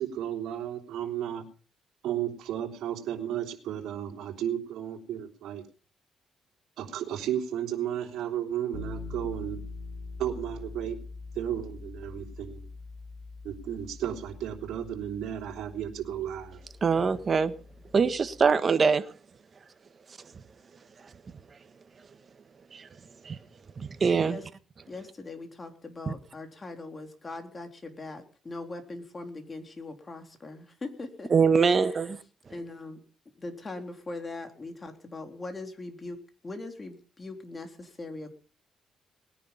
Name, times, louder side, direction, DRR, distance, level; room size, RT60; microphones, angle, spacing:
voice 1, 0.0-1.4 2.0-5.6 6.8-9.6 10.2-11.0 11.3-12.6 13.4-16.6, right 10 dB, 80° right, 3.2 m, -33 dB
sound 1, 8.7-18.5, left 3 dB, 70° left, 3.3 m, -44 dB
voice 2, 16.8-17.5 17.9-19.0 22.7-22.9 23.2-23.4 23.8-24.4 26.1-26.2 31.3-32.2, right 5 dB, 40° right, 1.4 m, -23 dB
voice 3, 24.9-32.1 32.5-33.0 33.4-36.2 36.4-38.3, left 2 dB, 30° left, 3.6 m, -41 dB
20.0 x 10.0 x 5.5 m
cardioid pair, 90°, 0 cm